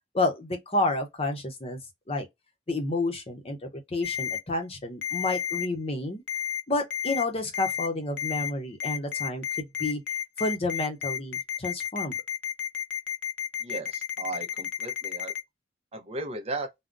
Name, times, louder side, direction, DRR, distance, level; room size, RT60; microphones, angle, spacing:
voice 1, 0.1-1.8 2.1-2.3 2.7-6.2 6.7-10.0 10.4-12.2, left 2 dB, 30° left, 0.7 m, -30 dB
Ringtone, 4.0-4.4 5.0-5.7 6.3-6.6 6.9-7.2 7.5-7.9 8.2-8.5 8.8-15.4, left 9 dB, 65° left, 0.5 m, -31 dB
voice 2, 13.6-15.3 15.9-16.7, right 2 dB, 35° right, 0.7 m, -36 dB
3.6 x 2.1 x 2.5 m
head